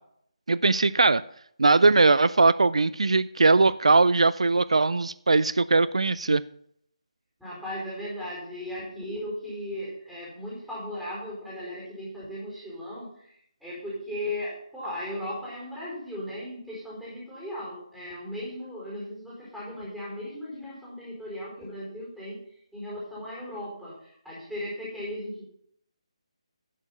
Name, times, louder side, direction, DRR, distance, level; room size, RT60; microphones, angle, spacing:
voice 1, 0.5-1.2 1.6-6.4, right 3 dB, 70° right, 18 dB, 0.4 m, -20 dB
voice 2, 7.4-25.4, left 1 dB, ahead, -8 dB, 4.5 m, -37 dB
11.0 x 7.0 x 5.6 m, 0.69 s
figure-of-eight pair, 150°, 3 cm